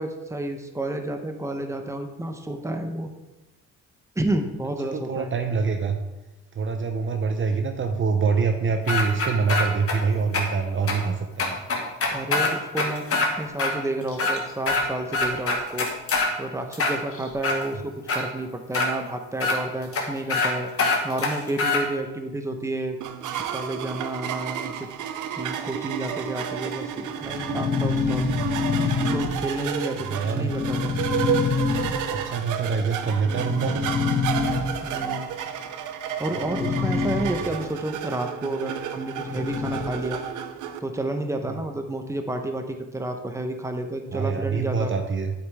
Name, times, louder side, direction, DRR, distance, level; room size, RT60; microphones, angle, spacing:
voice 1, 0.0-3.1 4.1-5.3 12.1-15.9 16.4-20.7 21.0-23.0 23.5-24.9 25.4-28.2 29.1-30.9 34.8-35.3 36.2-40.2 40.8-44.9, right 1 dB, 10° right, 5 dB, 1.1 m, -30 dB
voice 2, 4.8-6.0 6.6-11.6 30.1-30.5 32.1-34.0 44.1-45.3, right 5 dB, 40° right, 6 dB, 0.8 m, -25 dB
sound 1, 8.9-10.0 10.3-10.4 10.9-11.0 11.4-13.3 13.6-13.7 14.1-14.8 15.1-16.3 16.7-17.6 18.1-18.2 18.7-18.9 19.4-19.6 19.9-20.0 20.3-20.5 20.8-21.8, left 3 dB, 50° left, 1.9 m, -23 dB
sound 2, 23.0-40.8, right 8 dB, 80° right, 0.8 m, -31 dB
sound 3, 26.9-29.8 30.2-32.3 33.2-35.0 36.2-37.2 37.5-37.6 39.2-40.0, left 4 dB, 30° left, 2.6 m, -26 dB
8.7 x 7.9 x 3.6 m, 1.1 s
cardioid pair, 90°, 30 cm